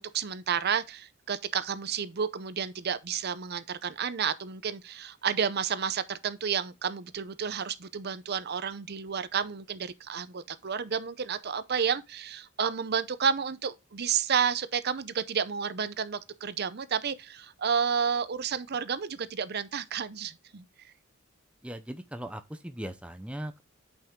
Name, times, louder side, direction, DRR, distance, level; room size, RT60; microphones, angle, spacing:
voice 1, 0.0-20.6, right 7 dB, 50° right, 0.6 m, -31 dB
voice 2, 21.6-23.6, right 1 dB, 5° right, 0.6 m, -39 dB
8.6 x 5.6 x 3.6 m
head